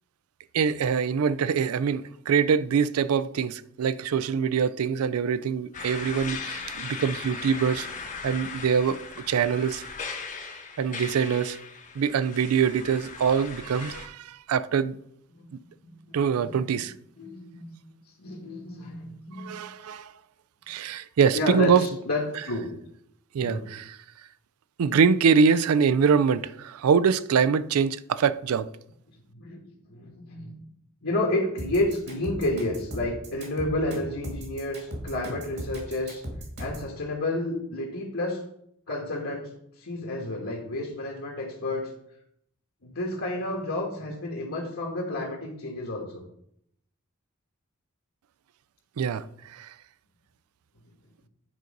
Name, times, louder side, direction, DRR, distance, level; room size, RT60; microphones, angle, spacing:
voice 1, 0.5-7.9 8.2-9.8 10.8-11.6 12.0-15.0 16.1-16.9 19.4-20.1 20.7-21.8 23.3-24.0 24.8-28.7 49.0-49.7, right 6 dB, 80° right, 0.4 m, -24 dB
sound 1, 5.7-14.1, left 5 dB, 35° left, 1.0 m, -38 dB
voice 2, 15.3-16.2 16.4-16.6 17.2-19.6 21.3-22.7 23.4-23.7 29.3-29.6 29.9-30.5 31.0-36.2 36.6-38.4 38.9-39.5 39.8-41.9 42.8-46.2, left 1 dB, 70° left, 1.4 m, -31 dB
sound 2, 31.6-36.9, equal, 50° right, 2.3 m, -37 dB
9.3 x 3.9 x 5.2 m
head